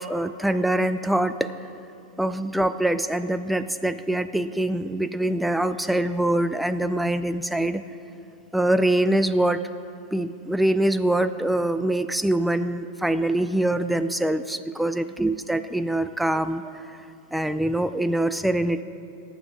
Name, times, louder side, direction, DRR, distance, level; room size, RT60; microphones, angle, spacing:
voice 1, 0.0-1.5 2.2-7.8 8.5-9.6 10.1-17.1 17.3-18.8, right 1 dB, 5° right, 11 dB, 0.3 m, -24 dB
18.5 x 7.2 x 3.6 m, 2.6 s
hypercardioid pair, 115°, 0 cm